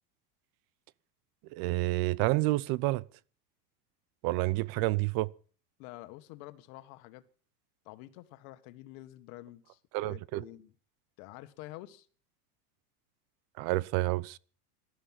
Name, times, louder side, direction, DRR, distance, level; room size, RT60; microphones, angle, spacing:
voice 1, 1.5-3.0 4.2-5.3 9.9-10.5 13.6-14.4, right 19 dB, 50° right, 0.7 m, -29 dB
voice 2, 5.8-7.2 7.9-9.8 10.1-10.7 11.2-12.1, left 17 dB, 60° left, 1.7 m, -48 dB
18.0 x 13.0 x 5.8 m
supercardioid pair, 130°, 47 cm